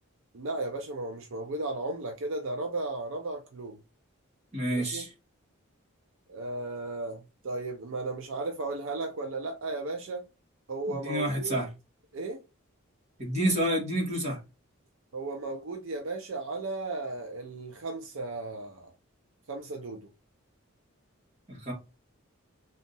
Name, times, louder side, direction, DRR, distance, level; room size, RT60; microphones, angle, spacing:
voice 1, 0.3-3.8 4.7-5.1 6.3-10.3 10.7-11.6 12.1-12.4 15.1-18.9 19.5-20.1, right 2 dB, 65° right, 0.6 m, -35 dB
voice 2, 4.5-5.1 10.9-11.7 13.2-14.4 21.5-21.7, right 1 dB, 30° right, 1.5 m, -29 dB
3.6 x 2.5 x 3.9 m
head